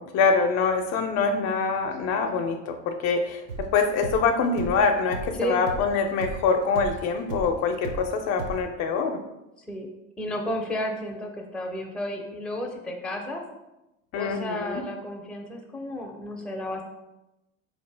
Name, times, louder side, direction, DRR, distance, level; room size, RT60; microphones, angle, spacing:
voice 1, 0.0-9.2 14.1-14.8, left 5 dB, 45° left, 5 dB, 0.5 m, -25 dB
sound 1, 3.5-8.1 8.4-8.6, right 3 dB, 75° right, 0.7 m, -35 dB
voice 2, 10.2-13.4 14.1-16.8, equal, ahead, 1 dB, 0.6 m, -32 dB
4.1 x 2.8 x 3.2 m, 0.95 s
hypercardioid pair, 80°, 38 cm